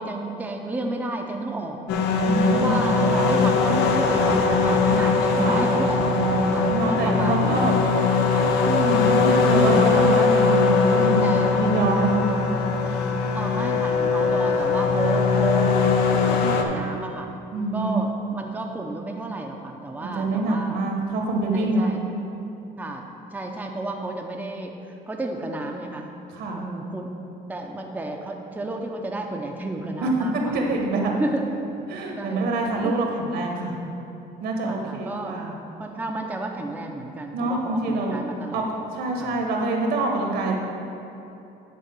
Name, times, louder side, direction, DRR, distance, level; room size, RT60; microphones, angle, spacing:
voice 1, 0.0-1.8 2.5-6.1 6.5-7.9 8.3-8.6 11.2-11.5 13.3-15.8 16.1-17.3 17.7-20.8 21.5-22.0 22.8-23.0 23.3-26.1 26.6-27.1 27.5-30.6 31.2-31.4 32.2-32.5 32.8-33.0 33.7-33.8 34.6-35.4 35.8-38.7 39.2-39.4, right 2 dB, 10° right, 1 dB, 0.6 m, -32 dB
sound 1, 1.9-16.6, left 4 dB, 90° left, 0.7 m, -21 dB
voice 2, 2.2-2.7 3.1-3.3 5.4-5.6 6.7-7.8 8.6-12.3 17.5-18.0 20.0-21.9 26.3-26.7 30.0-31.1 31.9-33.8 34.4-35.5 37.3-38.2 38.5-40.5, right 2 dB, 75° right, 0 dB, 1.5 m, -25 dB
9.3 x 4.0 x 6.2 m, 2.9 s
cardioid pair, 110°, 17 cm